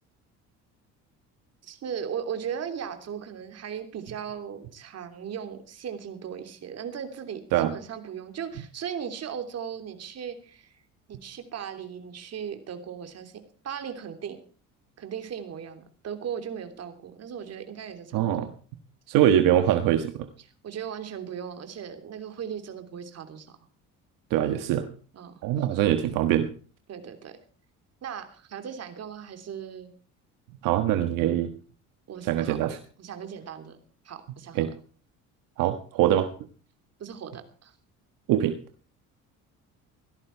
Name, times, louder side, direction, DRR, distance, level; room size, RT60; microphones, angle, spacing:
voice 1, 1.6-10.8 11.1-14.4 15.0-18.5 20.6-23.6 25.1-25.9 26.9-27.4 28.0-29.9 32.1-32.6 33.0-33.8 34.0-34.7 37.0-37.7, right 8 dB, 50° right, 7 dB, 3.1 m, -37 dB
voice 2, 18.1-18.5 19.1-20.3 24.3-24.9 25.4-26.5 30.6-31.5 32.3-32.8 34.5-34.7 35.6-36.3 38.3-38.6, right 11 dB, 80° right, 8 dB, 1.4 m, -23 dB
17.5 x 13.0 x 4.6 m, 0.41 s
cardioid pair, 100°, 32 cm